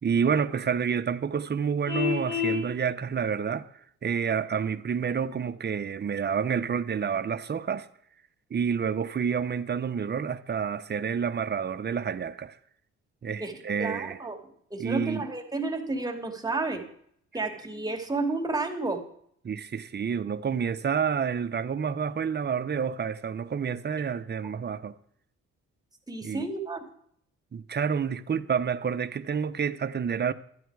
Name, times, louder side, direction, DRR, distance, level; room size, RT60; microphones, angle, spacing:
voice 1, 0.0-3.7 4.0-7.9 8.5-12.6 13.2-14.2 14.8-15.3 19.4-25.0 26.2-26.5 27.5-30.3, right 7 dB, 35° right, 0.8 m, -29 dB
Vehicle horn car horn honking, 1.9-2.6, left 7 dB, 80° left, 6.1 m, -28 dB
voice 2, 13.8-14.4 14.7-16.8 17.3-19.0 26.1-26.8, right 3 dB, 10° right, 2.4 m, -31 dB
12.5 x 10.5 x 4.8 m
cardioid pair, 90°, 30 cm